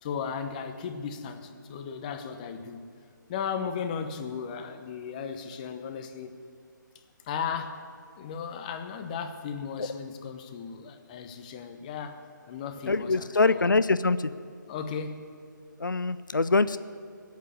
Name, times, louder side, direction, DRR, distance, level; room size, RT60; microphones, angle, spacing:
voice 1, 0.0-2.9 3.3-6.3 7.2-7.8 8.2-13.8 14.7-15.3, left 6 dB, 25° left, 8 dB, 1.0 m, -36 dB
voice 2, 12.9-14.3 15.8-16.8, left 3 dB, 75° left, 14 dB, 0.5 m, -24 dB
17.0 x 8.3 x 9.8 m, 2.2 s
figure-of-eight pair, 140°, 11 cm